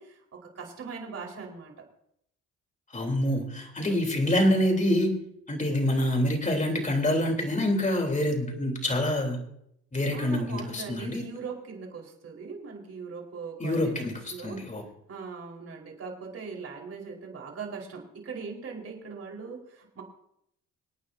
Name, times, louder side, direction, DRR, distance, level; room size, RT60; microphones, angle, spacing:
voice 1, 0.0-1.7 10.1-14.6 15.1-20.0, right 5 dB, 55° right, -1 dB, 4.7 m, -40 dB
voice 2, 2.9-5.1 5.5-9.4 9.9-11.2 13.6-14.8, left 1 dB, 25° left, 2 dB, 3.6 m, -26 dB
26.5 x 9.2 x 2.8 m, 0.74 s
cardioid pair, 90°, 30 cm